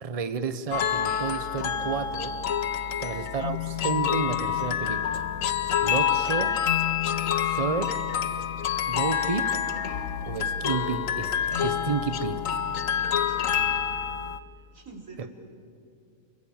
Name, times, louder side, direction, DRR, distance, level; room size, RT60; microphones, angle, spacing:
voice 1, 0.0-2.4 3.0-5.3 5.8-6.5 7.4-8.0 8.9-9.6 10.2-12.6 15.2-15.3, right 5 dB, 30° right, 11 dB, 1.0 m, -31 dB
sound 1, 0.7-14.4, left 8 dB, 80° left, 1.3 m, -27 dB
voice 2, 2.8-3.2 6.2-6.6 13.2-14.0 14.5-15.3, right 3 dB, 85° right, 2 dB, 4.4 m, -47 dB
30.0 x 23.0 x 7.3 m, 2.5 s
omnidirectional pair, 1.4 m